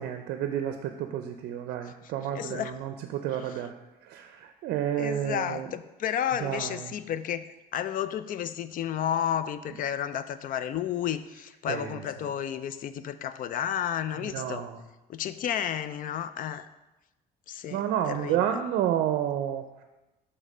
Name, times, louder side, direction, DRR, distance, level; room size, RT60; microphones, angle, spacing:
voice 1, 0.0-3.7 4.0-5.7 6.4-6.7 11.7-11.9 14.3-14.8 17.7-19.8, right 10 dB, 75° right, 7 dB, 0.5 m, -30 dB
voice 2, 2.0-2.7 3.3-3.6 5.0-7.4 7.7-14.6 15.1-16.7 17.5-18.6, left 9 dB, 55° left, 13 dB, 0.4 m, -32 dB
7.2 x 3.3 x 5.4 m, 1.0 s
cardioid pair, 110°, 17 cm